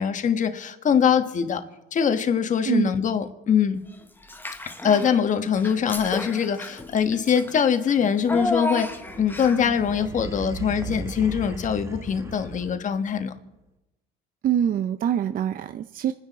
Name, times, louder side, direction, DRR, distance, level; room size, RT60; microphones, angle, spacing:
voice 1, 0.0-1.6 1.9-3.8 4.8-13.3, left 7 dB, 40° left, 8 dB, 1.3 m, -23 dB
Child speech kid speaking / Bathtub (filling or washing), 4.2-5.2 5.5-9.8, left 1 dB, 10° left, 1.1 m, -32 dB
sound 1, 8.8-13.1, right 3 dB, 15° right, 1.4 m, -36 dB
voice 2, 14.4-16.1, right 9 dB, 45° right, 9 dB, 0.6 m, -24 dB
28.0 x 10.0 x 4.1 m, 0.98 s
cardioid pair, 115°, 21 cm